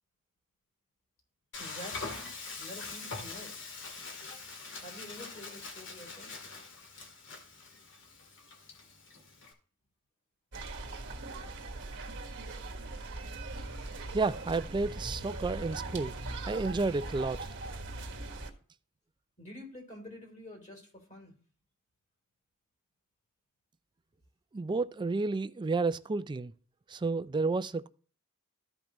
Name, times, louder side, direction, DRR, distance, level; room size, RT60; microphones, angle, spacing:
Frying (food), 1.5-9.5, left 4 dB, 60° left, 2.0 m, -43 dB
voice 1, 1.6-2.1 2.6-3.5 4.2-4.4 4.8-6.3 11.3-11.6 19.4-21.3, left 1 dB, 35° left, 3.3 m, -48 dB
sound 1, 10.5-18.5, right 2 dB, 55° right, 1.5 m, -40 dB
voice 2, 14.1-16.1 16.5-17.5 24.5-26.5 26.9-27.9, right 3 dB, 20° right, 0.3 m, -31 dB
14.5 x 5.3 x 3.1 m
head